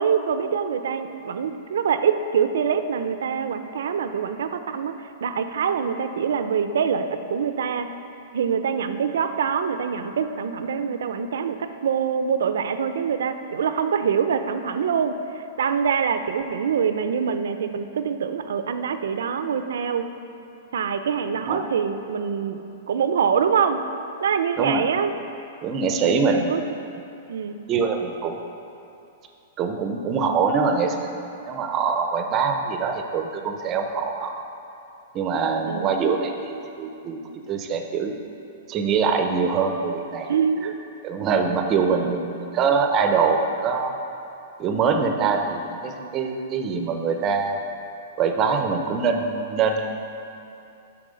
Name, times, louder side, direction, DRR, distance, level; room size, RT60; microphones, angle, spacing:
voice 1, 0.0-7.9 8.3-20.1 20.7-22.6 22.9-23.8 24.2-25.1 26.0-26.6 27.3-27.6 35.7-36.0 40.3-40.7 41.8-42.2, right 7 dB, 85° right, 9 dB, 0.5 m, -25 dB
voice 2, 25.6-26.5 27.7-28.3 29.6-31.1 31.5-34.3 35.1-38.1 38.7-40.3 41.0-43.9 44.6-47.6 48.2-50.0, right 5 dB, 25° right, 5 dB, 0.6 m, -24 dB
7.7 x 6.0 x 5.0 m, 2.7 s
hypercardioid pair, 160°, 0 cm